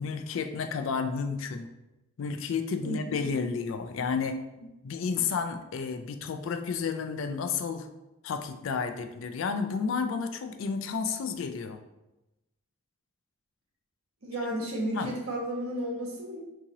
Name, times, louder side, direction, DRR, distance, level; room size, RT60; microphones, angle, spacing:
voice 1, 0.0-1.7 2.2-7.9 8.2-11.8 14.9-15.1, left 5 dB, 65° left, 7 dB, 0.3 m, -31 dB
voice 2, 2.8-3.2 14.2-16.4, right 1 dB, 85° right, -3 dB, 1.1 m, -33 dB
3.7 x 2.8 x 2.9 m, 0.96 s
head